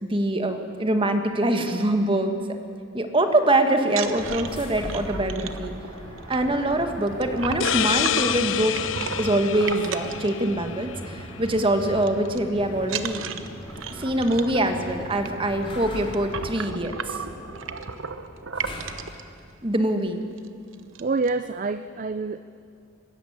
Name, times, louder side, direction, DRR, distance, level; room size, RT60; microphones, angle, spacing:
voice 1, 0.0-2.4 2.9-5.7 6.3-8.7 9.2-13.2 13.9-17.2 19.6-20.2, right 1 dB, 25° right, 6 dB, 1.6 m, -24 dB
sound 1, 3.9-11.0 11.3-11.6 11.8-12.4 12.8-19.2 19.9-20.0 20.3-20.5 20.7-21.3, right 6 dB, 85° right, 1.0 m, -35 dB
sound 2, 4.1-19.3, equal, 25° left, 3.9 m, -39 dB
sound 3, 7.6-11.1, left 10 dB, 75° left, 0.6 m, -28 dB
voice 2, 21.0-22.4, right 3 dB, 40° right, 12 dB, 0.5 m, -27 dB
24.5 x 13.5 x 9.7 m, 2.4 s
head